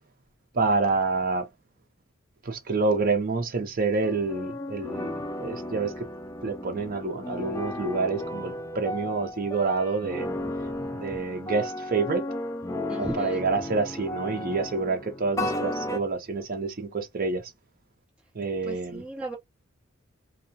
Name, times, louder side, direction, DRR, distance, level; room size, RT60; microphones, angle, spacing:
voice 1, 0.5-1.5 2.4-5.9 6.4-10.3 11.0-12.2 13.0-17.4 18.3-19.0, right 3 dB, 45° right, 0.6 m, -27 dB
sound 1, 4.0-16.0, left 1 dB, 15° left, 0.3 m, -34 dB
voice 2, 10.4-11.2 12.9-13.4 18.6-19.3, right 1 dB, 5° right, 1.0 m, -37 dB
2.2 x 2.2 x 2.5 m
head